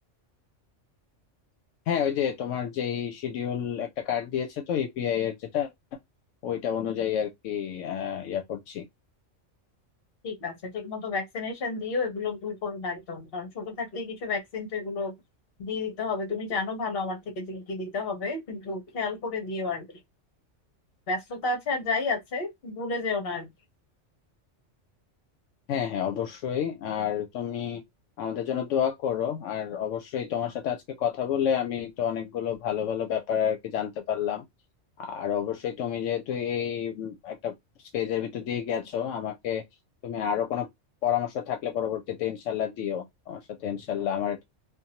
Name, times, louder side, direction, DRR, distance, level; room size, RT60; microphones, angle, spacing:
voice 1, 1.9-5.7 6.4-8.9 25.7-27.8 28.2-34.4 35.0-37.5 37.9-39.6 40.0-40.7 41.0-44.4, left 9 dB, 80° left, 0.9 m, -29 dB
voice 2, 10.2-15.1 15.6-19.9 21.1-23.5, left 3 dB, 55° left, 1.1 m, -31 dB
2.7 x 2.3 x 2.7 m
omnidirectional pair, 1.3 m